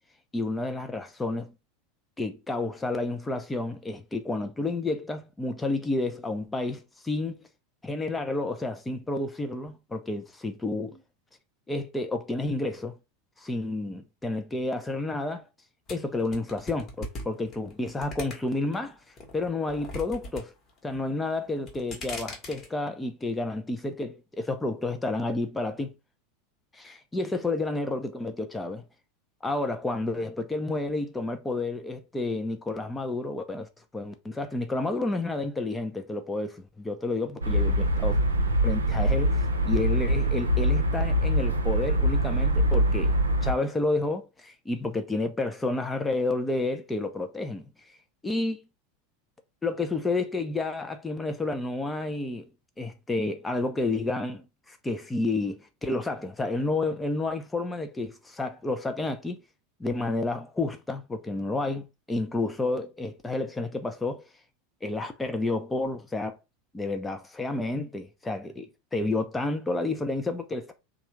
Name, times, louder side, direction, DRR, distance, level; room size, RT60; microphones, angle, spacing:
voice 1, 0.3-1.5 2.2-7.4 7.8-11.0 11.7-12.9 13.4-15.4 15.9-19.0 19.3-20.5 20.8-25.9 26.7-28.8 29.4-37.7 38.0-38.2 38.6-43.1 43.4-47.7 48.2-48.6 49.6-52.5 52.8-59.4 59.8-64.2 64.8-66.4 66.7-70.7, left 2 dB, 10° left, 0.7 m, -30 dB
sound 1, 15.9-18.7 19.2-20.4 20.7-21.2 21.6-22.7, left 2 dB, 35° left, 1.3 m, -39 dB
sound 2, 37.4-43.5, equal, 80° right, 0.6 m, -24 dB
3.2 x 2.5 x 3.1 m
figure-of-eight pair, 85°, 0 cm